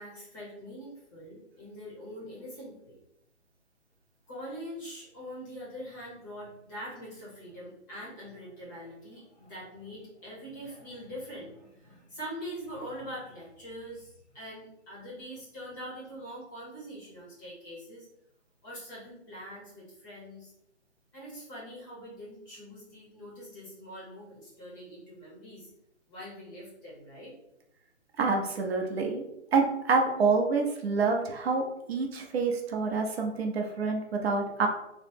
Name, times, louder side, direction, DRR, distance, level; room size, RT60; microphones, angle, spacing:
voice 1, 0.0-3.0 4.3-18.1 18.6-20.5 21.1-25.7 26.1-27.3, equal, 15° left, -6 dB, 0.6 m, -43 dB
voice 2, 28.2-29.2 29.5-31.6 31.9-34.7, right 4 dB, 60° right, 2 dB, 0.6 m, -27 dB
3.0 x 2.0 x 3.2 m, 0.85 s
hypercardioid pair, 150°, 36 cm